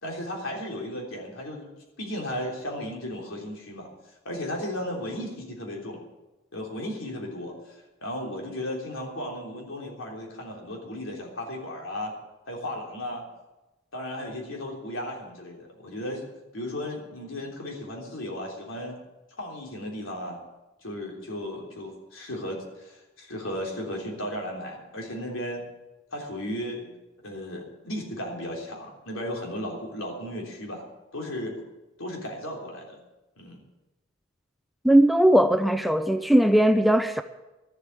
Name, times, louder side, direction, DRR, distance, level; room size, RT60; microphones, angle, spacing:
voice 1, 0.0-1.7 2.0-3.9 4.3-6.0 6.5-12.2 12.5-13.3 13.9-16.3 16.5-19.0 19.4-20.4 20.8-25.7 26.1-26.9 27.2-30.8 31.1-31.6 32.0-33.0 33.4-33.6, left 1 dB, 80° left, 3.5 m, -35 dB
voice 2, 34.8-37.2, right 1 dB, ahead, 0.4 m, -19 dB
13.0 x 8.0 x 8.7 m
head